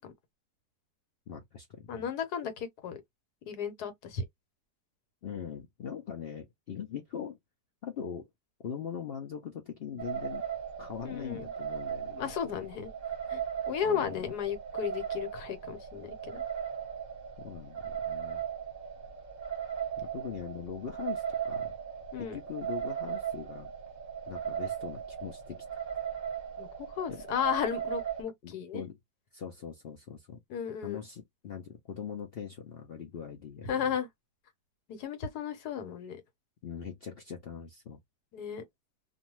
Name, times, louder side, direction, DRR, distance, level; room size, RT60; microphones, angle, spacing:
voice 1, 1.3-2.1 5.2-7.4 7.8-8.3 8.6-10.4 10.8-12.2 12.4-12.5 13.8-14.3 17.4-18.4 20.0-21.7 22.2-23.7 24.3-25.6 27.1-27.2 28.4-29.0 29.3-30.4 30.8-33.9 36.6-38.0, left 7 dB, 65° left, 0.5 m, -41 dB
voice 2, 1.9-3.0 3.5-4.2 11.0-11.5 12.1-12.9 13.3-13.4 13.7-16.4 22.1-22.4 26.6-28.9 30.5-31.0 33.7-34.1 34.9-36.2 38.3-38.6, left 8 dB, 80° left, 1.4 m, -34 dB
sound 1, 10.0-28.2, right 8 dB, 35° right, 0.8 m, -37 dB
2.6 x 2.3 x 3.0 m
omnidirectional pair, 1.7 m